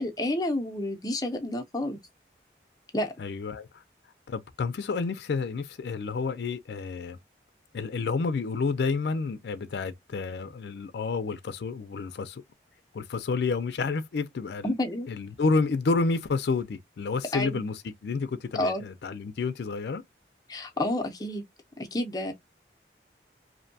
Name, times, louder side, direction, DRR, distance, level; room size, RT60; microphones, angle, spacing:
voice 1, 0.0-2.0 2.9-3.1 14.6-15.1 17.3-17.6 18.5-18.8 20.5-21.4 21.8-22.3, left 1 dB, 20° left, 0.5 m, -29 dB
voice 2, 3.2-3.8 4.3-7.2 7.7-12.4 12.9-14.7 15.1-20.0, left 4 dB, 75° left, 0.4 m, -30 dB
2.6 x 2.1 x 2.6 m
head